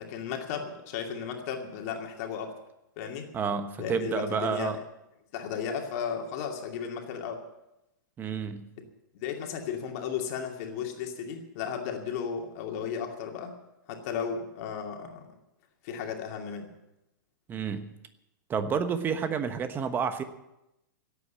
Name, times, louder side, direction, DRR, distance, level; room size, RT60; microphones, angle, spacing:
voice 1, 0.0-2.5 3.0-3.3 3.8-4.8 5.3-7.4 9.1-13.5 13.9-15.2 15.8-16.7, left 7 dB, 45° left, 3 dB, 2.5 m, -34 dB
voice 2, 3.3-4.8 8.2-8.7 17.5-17.9 18.5-20.2, right 6 dB, 20° right, 10 dB, 1.2 m, -30 dB
17.0 x 8.5 x 8.8 m, 0.90 s
hypercardioid pair, 145°, 11 cm